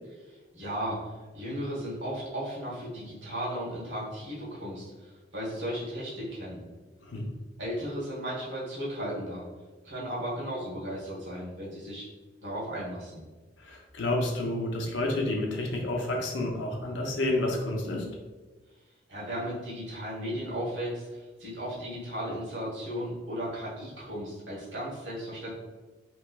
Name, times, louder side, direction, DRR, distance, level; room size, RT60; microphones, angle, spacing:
voice 1, 0.5-6.6 7.6-9.5 9.8-12.1 12.4-13.2 19.1-25.5, equal, 80° right, -5 dB, 1.1 m, -35 dB
voice 2, 13.6-18.1, left 1 dB, 70° left, 0 dB, 0.6 m, -30 dB
3.1 x 3.0 x 2.2 m, 1.3 s
head